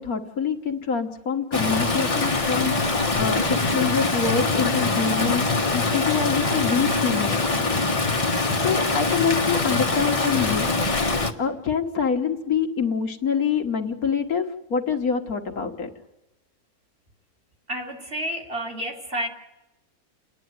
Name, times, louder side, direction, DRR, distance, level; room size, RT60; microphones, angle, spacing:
voice 1, 0.0-3.4 3.7-7.9 8.6-10.7 11.4-14.5 14.7-15.9, left 6 dB, 70° left, 4 dB, 1.8 m, -26 dB
Stream, 1.5-11.3, left 3 dB, 25° left, 1.2 m, -23 dB
voice 2, 17.7-19.3, right 1 dB, 40° right, 1 dB, 2.9 m, -30 dB
29.5 x 10.0 x 9.4 m, 0.98 s
omnidirectional pair, 1.6 m